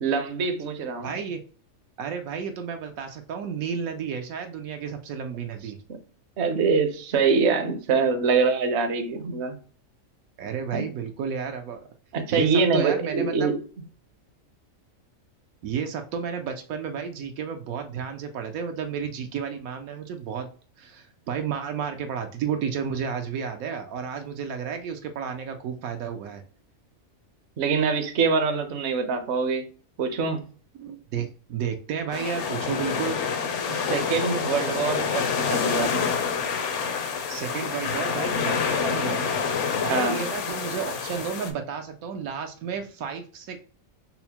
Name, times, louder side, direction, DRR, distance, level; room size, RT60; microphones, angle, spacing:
voice 1, 0.0-1.1 6.4-9.6 10.7-10.9 12.1-13.6 27.6-29.7 30.0-30.4 33.7-36.0 39.9-40.2, right 5 dB, 60° right, 0.9 m, -24 dB
voice 2, 1.0-1.4 2.0-5.8 10.4-11.9 12.3-13.5 15.6-20.5 20.8-26.4 30.8-33.2 37.3-39.4 39.8-43.6, right 7 dB, 80° right, 1.1 m, -32 dB
sound 1, 32.1-41.5, left 6 dB, 65° left, 0.9 m, -27 dB
5.5 x 2.0 x 2.8 m
omnidirectional pair, 1.5 m